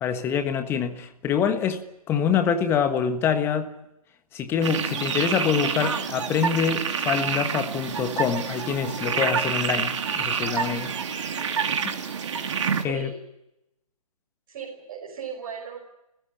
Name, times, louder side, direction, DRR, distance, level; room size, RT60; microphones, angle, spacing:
voice 1, 0.0-3.7 4.3-10.9 11.8-11.9 12.8-13.1, left 7 dB, 10° left, 1.4 m, -25 dB
sound 1, 4.6-12.8, right 6 dB, 50° right, 2.6 m, -28 dB
voice 2, 12.4-13.2 14.5-16.0, right 6 dB, 35° right, 6.1 m, -37 dB
30.0 x 15.0 x 8.6 m
figure-of-eight pair, 145°, 19 cm